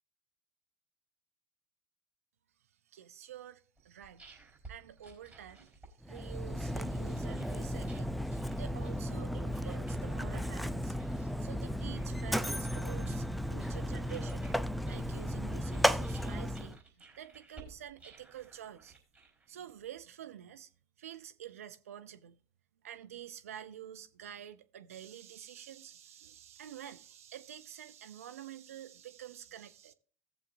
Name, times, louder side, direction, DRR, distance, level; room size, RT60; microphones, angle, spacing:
voice 1, 2.9-11.0 11.4-14.5 14.9-18.9 19.5-20.7 21.0-22.4 22.8-29.9, right 10 dB, 80° right, 0.6 m, -49 dB
sound 1, 3.8-19.9, right 3 dB, 20° right, 4.4 m, -57 dB
Mechanisms, 6.0-16.8, equal, ahead, 0.4 m, -34 dB
17.0 x 7.2 x 2.6 m
hypercardioid pair, 70°, 8 cm